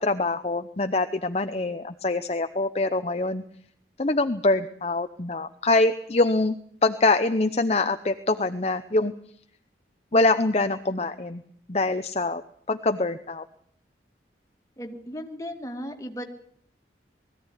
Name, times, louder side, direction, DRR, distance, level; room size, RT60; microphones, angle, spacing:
voice 1, 0.0-3.4 4.0-6.6 6.8-9.1 10.1-11.4 11.7-12.4 12.7-13.4, left 2 dB, 35° left, 9 dB, 0.8 m, -24 dB
voice 2, 14.8-16.2, equal, 20° left, 4 dB, 2.4 m, -36 dB
20.5 x 15.0 x 9.8 m, 0.65 s
head